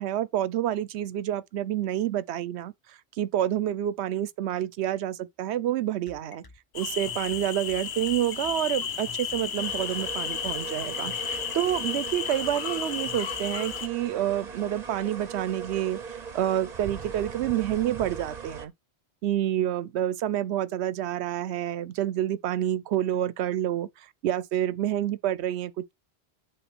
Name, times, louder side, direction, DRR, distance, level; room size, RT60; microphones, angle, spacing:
voice 1, 0.0-6.4 6.7-16.0 16.3-18.7 19.2-25.9, right 12 dB, 85° right, 0.9 m, -28 dB
sound 1, 6.1-13.8, left 4 dB, 25° left, 0.6 m, -49 dB
sound 2, 6.7-13.9, left 8 dB, 75° left, 1.0 m, -33 dB
sound 3, 9.6-18.7, right 6 dB, 40° right, 0.9 m, -39 dB
7.9 x 3.0 x 6.0 m
omnidirectional pair, 1.1 m